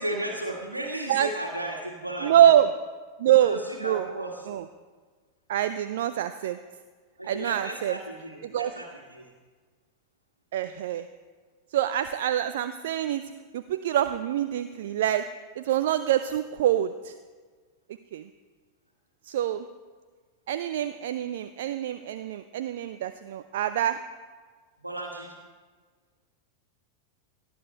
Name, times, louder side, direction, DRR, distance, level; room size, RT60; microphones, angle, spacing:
voice 1, 0.0-2.3 3.4-4.5 7.2-9.3 24.8-25.4, right 1 dB, 85° right, -2 dB, 1.8 m, -34 dB
voice 2, 2.2-2.7 3.2-4.1 4.5-4.6 5.5-6.6 7.2-8.0 8.4-8.7 10.5-11.1 11.7-13.2 13.5-15.3 15.6-17.2 18.1-18.2 19.2-19.7 20.5-24.0, right 11 dB, 55° right, 11 dB, 0.6 m, -25 dB
18.5 x 13.0 x 4.4 m, 1.5 s
figure-of-eight pair, 90°, 0 cm